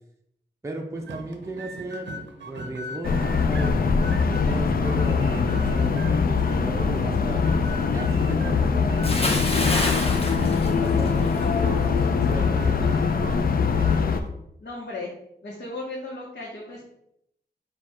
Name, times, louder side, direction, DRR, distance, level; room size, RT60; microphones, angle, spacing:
voice 1, 0.6-3.7 4.3-7.4 7.9-13.2, right 1 dB, 15° right, 1 dB, 0.5 m, -36 dB
sound 1, 1.0-14.3, right 2 dB, 90° right, 0.6 m, -41 dB
sound 2, 3.0-14.2, left 5 dB, 55° left, 0.4 m, -22 dB
Bathtub (filling or washing) / Splash splatter, 9.0-11.5 11.8-12.1, left 2 dB, 35° left, 0.7 m, -27 dB
voice 2, 14.6-15.1 15.4-16.8, left 2 dB, 75° left, -5 dB, 1.0 m, -35 dB
4.4 x 2.3 x 4.6 m, 0.77 s
wide cardioid pair, 115°, 18 cm